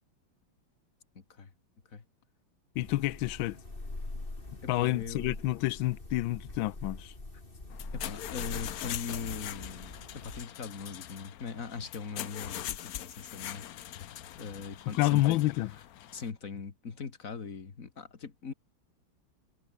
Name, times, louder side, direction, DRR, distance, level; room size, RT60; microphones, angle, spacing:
voice 1, 1.2-1.5 1.9-2.0 4.6-5.4 7.9-9.9 10.2-15.7 16.1-18.5, left 5 dB, 40° left, 2.3 m, -41 dB
sound 1, 2.7-10.4, left 2 dB, 25° left, 3.9 m, -43 dB
voice 2, 2.8-3.6 4.7-7.1 14.9-15.7, left 17 dB, 80° left, 1.3 m, -28 dB
sound 2, 7.7-16.3, left 12 dB, 60° left, 1.0 m, -42 dB
omnidirectional pair, 2.2 m